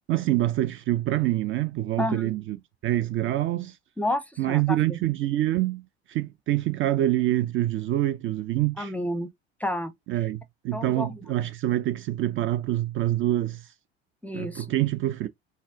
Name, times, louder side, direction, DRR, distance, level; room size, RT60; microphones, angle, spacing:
voice 1, 0.1-2.6 2.8-3.8 4.4-8.9 10.1-13.7 14.3-15.3, right 14 dB, 40° right, 0.4 m, -26 dB
voice 2, 2.0-2.3 4.0-5.0 8.8-9.3 9.6-9.9 10.7-11.2 14.2-14.7, left 1 dB, 5° left, 0.6 m, -30 dB
4.1 x 2.1 x 3.6 m
hypercardioid pair, 65°, 32 cm